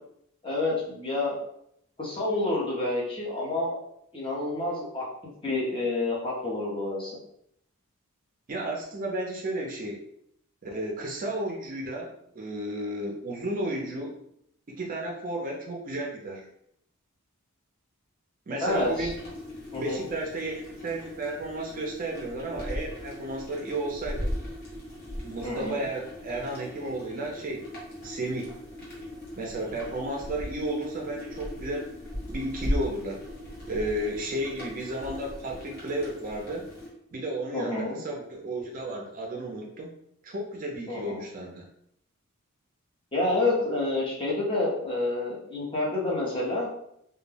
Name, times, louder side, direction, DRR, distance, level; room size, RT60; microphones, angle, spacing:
voice 1, 0.4-1.4 2.0-3.7 4.1-7.2 18.6-19.1 19.7-20.0 25.4-25.8 37.5-38.0 40.9-41.2 43.1-46.7, left 2 dB, 25° left, -4 dB, 0.6 m, -28 dB
voice 2, 8.5-10.0 10.6-14.1 14.8-16.5 18.5-19.2 19.7-24.3 25.2-27.7 28.0-28.5 29.4-31.9 32.3-33.2 33.7-36.7 37.1-39.9 40.2-41.6, right 1 dB, 40° right, 0 dB, 0.4 m, -33 dB
sound 1, 18.7-36.9, left 1 dB, 45° left, 0.9 m, -38 dB
2.2 x 2.1 x 3.2 m, 0.74 s
head